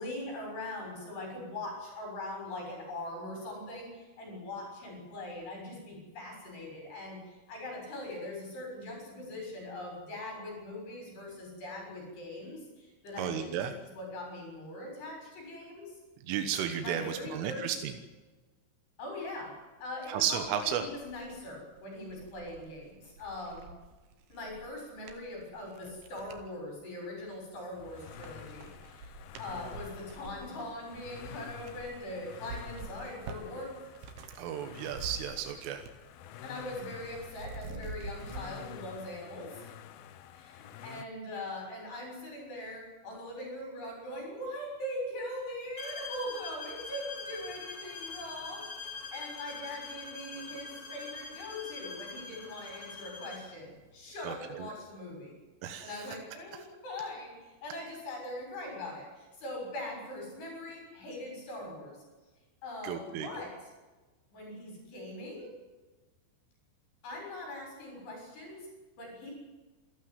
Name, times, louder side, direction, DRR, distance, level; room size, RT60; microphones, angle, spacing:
voice 1, 0.0-13.5 14.0-16.0 16.8-17.7 19.0-19.5 19.8-23.7 24.3-33.8 36.4-39.8 40.3-55.3 55.8-62.0 62.6-63.5 64.3-65.5 67.0-68.7 69.0-69.3, left 1 dB, 55° left, 1 dB, 8.7 m, -41 dB
voice 2, 13.2-13.7 16.2-17.9 20.1-20.9 34.4-35.9 54.2-54.7 55.6-56.1 62.8-63.3, right 9 dB, 85° right, 7 dB, 3.8 m, -33 dB
sound 1, 19.8-19.9 20.3-26.5 27.1-27.7 28.0-34.4 34.7-36.1 36.3-38.4, right 3 dB, 60° right, 3.6 m, -47 dB
sound 2, 27.7-41.1, left 11 dB, 75° left, 2.3 m, -49 dB
sound 3, 45.8-53.5, left 4 dB, 40° left, 4.4 m, -43 dB
28.0 x 13.0 x 9.5 m, 1.2 s
omnidirectional pair, 5.6 m